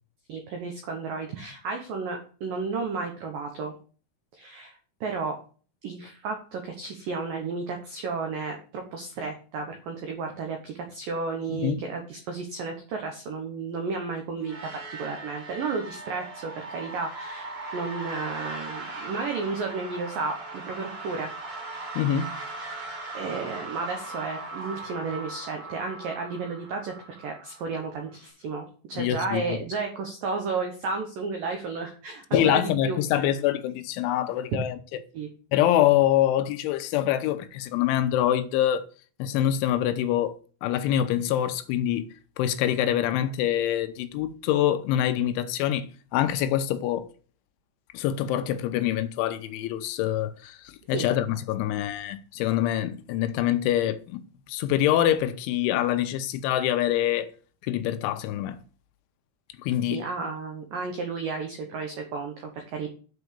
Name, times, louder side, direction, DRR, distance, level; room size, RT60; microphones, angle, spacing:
voice 1, 0.3-3.7 4.3-5.4 5.8-21.3 23.1-26.9 27.2-33.3 34.5-34.6 35.1-35.3 50.9-51.1 59.9-62.9, right 4 dB, 80° right, 2.0 m, -33 dB
voice 2, 11.5-11.8 22.0-22.4 29.0-29.6 32.3-34.8 35.5-38.8 39.2-42.1 42.4-47.1 47.9-54.2 54.5-57.3 57.6-58.6 59.6-60.0, left 11 dB, 80° left, 3.0 m, -25 dB
sound 1, 14.4-28.1, right 2 dB, 35° right, 2.5 m, -39 dB
8.7 x 4.7 x 6.8 m
omnidirectional pair, 5.6 m